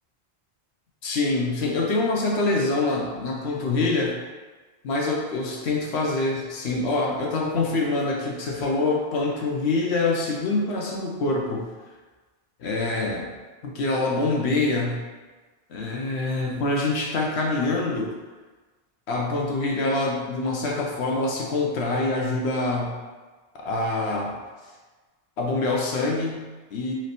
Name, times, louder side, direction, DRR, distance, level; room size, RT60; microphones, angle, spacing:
voice 1, 1.0-4.2 4.8-11.7 12.6-13.3 13.6-15.0 15.7-18.1 19.1-22.9 23.6-24.4 25.4-26.9, left 2 dB, 75° left, -1 dB, 0.9 m, -25 dB
3.2 x 2.9 x 4.0 m, 1.3 s
omnidirectional pair, 1.1 m